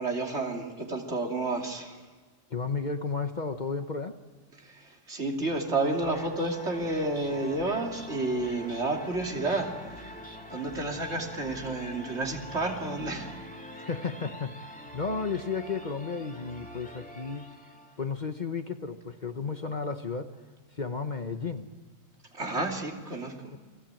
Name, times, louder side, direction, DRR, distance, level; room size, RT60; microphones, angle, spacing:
voice 1, 0.0-2.0 4.6-13.3 22.3-23.5, right 2 dB, 60° right, 1 dB, 3.2 m, -31 dB
voice 2, 2.5-4.2 13.7-17.5 18.0-20.3 20.7-21.7 23.5-23.6, left 4 dB, 40° left, 7 dB, 1.1 m, -33 dB
sound 1, 5.9-18.1, equal, 5° left, 2.4 m, -45 dB
29.0 x 19.5 x 9.0 m, 1.4 s
omnidirectional pair, 1.3 m